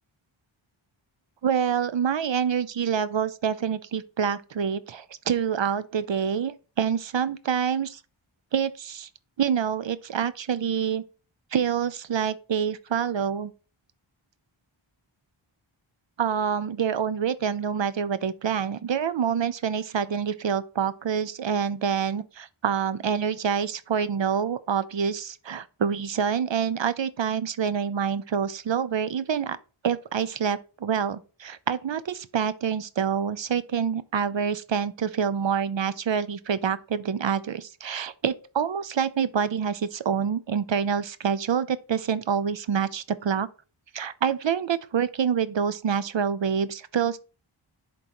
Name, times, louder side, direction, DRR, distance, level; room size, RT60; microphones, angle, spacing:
voice 1, 1.4-8.0 8.5-9.1 9.4-11.0 11.5-13.5 16.2-29.6 29.8-43.5 43.9-47.2, right 7 dB, 60° right, 0.6 m, -27 dB
10.5 x 3.8 x 2.9 m
wide cardioid pair, 65°, 50 cm